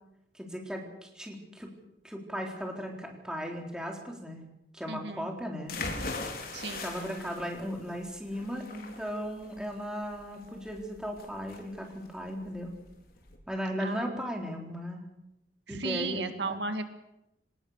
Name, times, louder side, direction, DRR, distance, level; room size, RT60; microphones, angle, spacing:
voice 1, 0.3-1.7 2.0-4.4 4.7-5.8 6.8-12.7 13.5-15.0 15.7-16.6, equal, 5° right, 1 dB, 3.9 m, -37 dB
voice 2, 4.9-5.3 6.5-6.9 13.8-14.1 15.7-16.8, right 3 dB, 75° right, 8 dB, 2.0 m, -35 dB
sound 1, 5.7-13.4, left 3 dB, 55° left, 4.1 m, -40 dB
25.0 x 19.5 x 6.7 m, 0.85 s
head